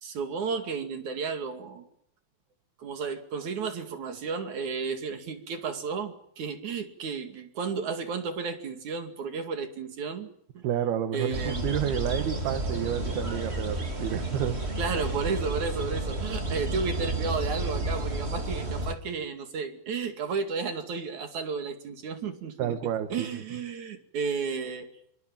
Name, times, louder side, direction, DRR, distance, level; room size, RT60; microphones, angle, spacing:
voice 1, 0.0-1.9 2.8-10.3 10.6-10.7 11.1-11.7 14.8-22.7 23.1-24.9, right 5 dB, 55° right, 8 dB, 3.6 m, -33 dB
voice 2, 10.6-14.6 22.6-23.3, right 10 dB, 85° right, 9 dB, 3.5 m, -30 dB
sound 1, 11.3-18.9, right 2 dB, 20° right, 2.6 m, -31 dB
26.0 x 24.5 x 7.4 m, 0.73 s
omnidirectional pair, 4.4 m